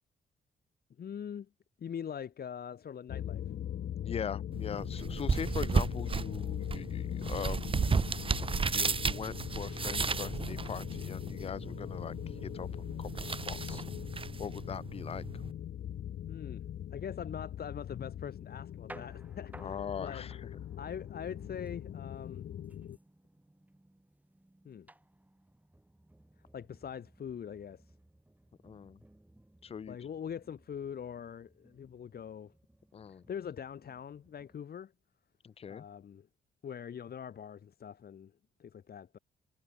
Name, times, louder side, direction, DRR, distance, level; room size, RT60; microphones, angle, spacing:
voice 1, 1.0-1.5 1.8-3.4 16.3-16.6 16.9-20.3 20.8-22.4 24.6-24.9 26.5-27.8 29.9-32.5 33.1-34.9 35.7-36.3 36.6-38.3 38.6-39.2, left 8 dB, 60° left, 1.4 m, -43 dB
sound 1, 3.1-23.0, left 10 dB, 75° left, 0.9 m, -41 dB
voice 2, 4.0-7.8 8.7-12.7 13.0-13.8 14.4-15.3 19.6-20.5 28.6-29.0 29.6-30.0 32.9-33.3 35.4-35.9, left 7 dB, 35° left, 0.4 m, -41 dB
sound 2, 4.5-15.5, right 5 dB, 30° right, 1.0 m, -34 dB
sound 3, 18.5-34.6, right 1 dB, 10° right, 5.3 m, -59 dB
wide cardioid pair, 125°, 19 cm